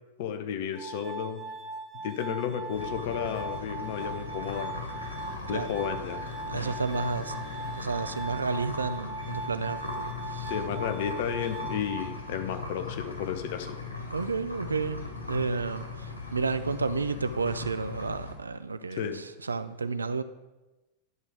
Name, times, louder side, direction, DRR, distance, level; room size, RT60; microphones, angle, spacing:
voice 1, 0.2-1.5 2.0-4.8 5.5-6.2 10.5-13.8 19.0-19.2, left 8 dB, 50° left, 7 dB, 1.0 m, -32 dB
Glass, 0.7-12.8, right 3 dB, 15° right, 0.8 m, -40 dB
sound 1, 2.7-18.3, left 4 dB, 85° left, 2.1 m, -39 dB
sound 2, 3.6-11.6 12.2-12.3 13.1-13.2 16.7-17.1, left 2 dB, 30° left, 3.7 m, -52 dB
voice 2, 6.5-7.4 7.7-10.5 14.1-20.2, right 4 dB, 75° right, 12 dB, 0.5 m, -31 dB
11.0 x 6.0 x 4.9 m, 1.1 s
figure-of-eight pair, 90°, 0 cm